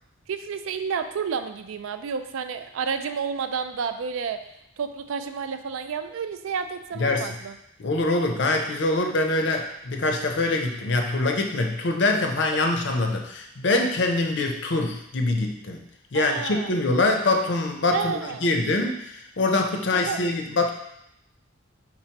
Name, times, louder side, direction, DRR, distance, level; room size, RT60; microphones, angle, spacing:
voice 1, 0.3-4.4 4.8-7.6 16.1-16.7 17.9-18.5 19.9-20.2, right 6 dB, 80° right, 9 dB, 0.4 m, -30 dB
voice 2, 7.0-7.3 7.8-15.8 16.1-20.7, left 2 dB, 60° left, 3 dB, 0.5 m, -24 dB
4.5 x 3.9 x 2.9 m, 0.78 s
head